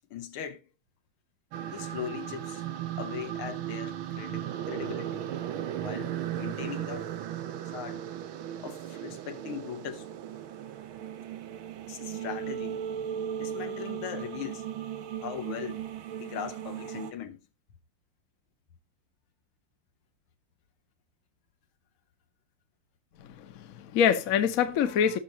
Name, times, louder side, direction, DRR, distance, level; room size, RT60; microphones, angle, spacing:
voice 1, 0.1-0.7 1.7-2.7 3.0-5.3 5.8-7.1 7.6-8.1 8.6-10.1 11.9-12.9 13.4-14.7 15.2-15.9 16.2-17.5, left 9 dB, 90° left, 1.9 m, -39 dB
sound 1, 1.5-17.1, right 10 dB, 75° right, 1.7 m, -36 dB
voice 2, 23.2-25.2, left 8 dB, 55° left, 1.1 m, -25 dB
17.5 x 6.0 x 2.9 m
omnidirectional pair, 2.3 m